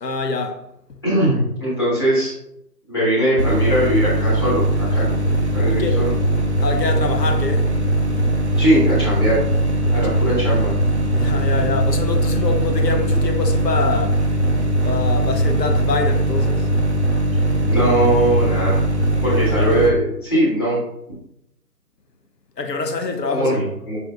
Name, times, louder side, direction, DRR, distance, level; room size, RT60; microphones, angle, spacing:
voice 1, 0.0-0.6 5.7-6.0 6.6-7.7 9.9-10.4 11.1-14.2 14.8-16.7 22.6-23.6, left 3 dB, 80° left, 0.8 m, -25 dB
voice 2, 1.0-2.3 2.9-5.1 5.5-6.1 8.6-9.4 9.9-10.7 17.7-18.8 19.2-20.8 23.2-24.0, right 1 dB, 15° left, 1.4 m, -20 dB
sound 1, 3.4-19.9, right 1 dB, 45° right, 0.6 m, -20 dB
6.5 x 2.6 x 2.4 m
figure-of-eight pair, 160°, 49 cm